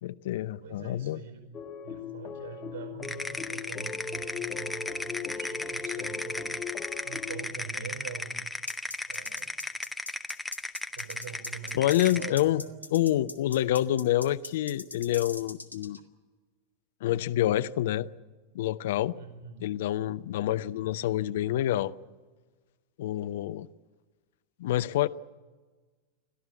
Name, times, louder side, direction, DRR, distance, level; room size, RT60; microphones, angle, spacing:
voice 1, 0.0-1.2 11.7-12.6 12.9-16.0 17.0-18.1 18.5-19.1 19.6-21.9 23.0-23.7 24.6-25.1, left 13 dB, 55° left, 12 dB, 0.6 m, -27 dB
voice 2, 0.6-1.4 1.8-6.5 7.0-8.4 9.1-9.6 10.9-12.8 19.1-19.7, right 6 dB, 50° right, 6 dB, 4.9 m, -44 dB
sound 1, 1.5-7.5, left 6 dB, 25° left, 1.7 m, -39 dB
sound 2, 3.0-12.4, left 2 dB, 5° left, 0.8 m, -36 dB
sound 3, 8.7-16.0, left 2 dB, 85° left, 1.3 m, -41 dB
29.0 x 12.5 x 8.7 m, 1.4 s
figure-of-eight pair, 90°, 0 cm